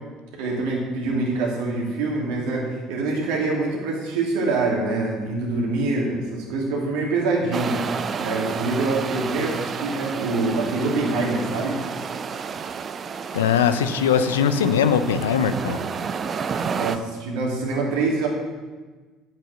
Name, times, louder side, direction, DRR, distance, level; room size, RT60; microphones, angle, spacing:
voice 1, 0.4-7.9 8.2-11.8 16.7-18.3, right 3 dB, 65° right, -2 dB, 2.7 m, -25 dB
sound 1, 7.5-17.0, right 6 dB, 40° right, 0.6 m, -30 dB
voice 2, 13.3-15.8, left 7 dB, 80° left, 11 dB, 0.6 m, -20 dB
9.4 x 7.5 x 6.5 m, 1.3 s
figure-of-eight pair, 60°, 0 cm